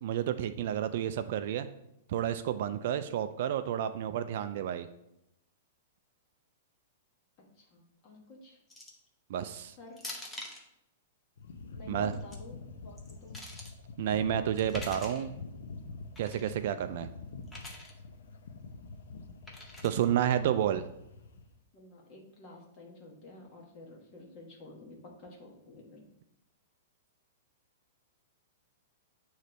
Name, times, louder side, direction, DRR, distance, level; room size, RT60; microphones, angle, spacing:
voice 1, 0.0-1.7 2.1-4.9 9.3-9.7 11.9-12.1 14.0-15.3 16.2-17.1 19.8-20.8, right 10 dB, 50° right, 10 dB, 0.3 m, -30 dB
voice 2, 7.6-8.6 9.8-10.0 11.7-13.4 20.2-20.7 21.7-26.0, left 2 dB, 25° left, -1 dB, 1.2 m, -51 dB
sound 1, 8.7-9.1 10.0-10.6 12.0-12.4 13.0-13.7 14.6-15.3 16.2-16.5 17.5-17.9 19.5-20.1, left 1 dB, 5° left, 0.6 m, -45 dB
sound 2, 11.4-21.5, left 3 dB, 80° left, 0.6 m, -45 dB
8.3 x 3.1 x 3.9 m, 0.82 s
supercardioid pair, 170°, 0 cm